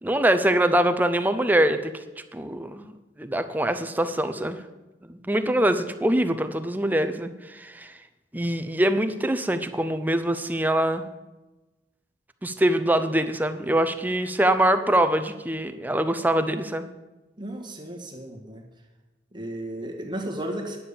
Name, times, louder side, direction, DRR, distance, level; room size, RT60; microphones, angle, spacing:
voice 1, 0.0-1.9 2.3-2.9 3.2-4.6 5.1-7.9 8.3-11.1 12.4-16.9, right 1 dB, 10° right, 10 dB, 0.6 m, -23 dB
voice 2, 17.4-18.6 19.3-20.8, right 1 dB, 25° right, 1 dB, 1.7 m, -34 dB
9.9 x 7.1 x 6.8 m, 1.1 s
head